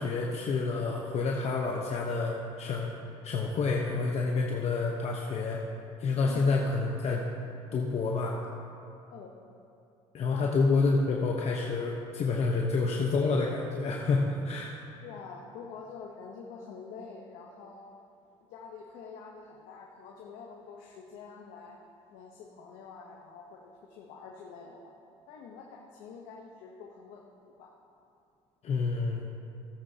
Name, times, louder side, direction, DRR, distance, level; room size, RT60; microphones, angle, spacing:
voice 1, 0.0-2.9 3.2-5.6 6.0-7.2 7.7-8.4 10.1-14.7 28.6-29.3, left 4 dB, 50° left, -1 dB, 1.0 m, -28 dB
voice 2, 6.2-6.5 9.1-9.4 10.3-10.5 15.0-17.9 18.4-21.8 22.1-24.9 25.3-27.7, left 5 dB, 75° left, -1 dB, 1.0 m, -47 dB
16.0 x 8.7 x 2.9 m, 2.7 s
supercardioid pair, 80°, 14 cm